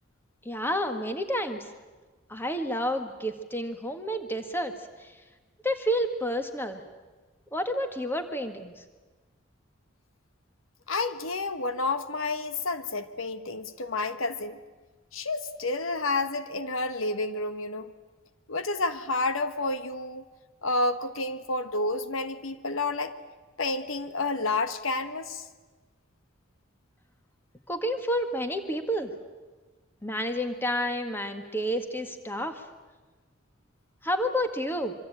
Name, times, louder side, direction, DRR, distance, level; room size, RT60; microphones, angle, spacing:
voice 1, 0.5-1.7 2.3-5.1 5.6-6.8 7.5-8.7 27.7-29.1 30.0-32.6 34.0-34.9, equal, 10° left, 6 dB, 1.8 m, -30 dB
voice 2, 10.9-14.6 15.1-17.9 18.5-20.2 20.6-23.1 23.6-25.4, left 2 dB, 75° left, 10 dB, 1.4 m, -30 dB
25.5 x 25.0 x 9.0 m, 1.3 s
head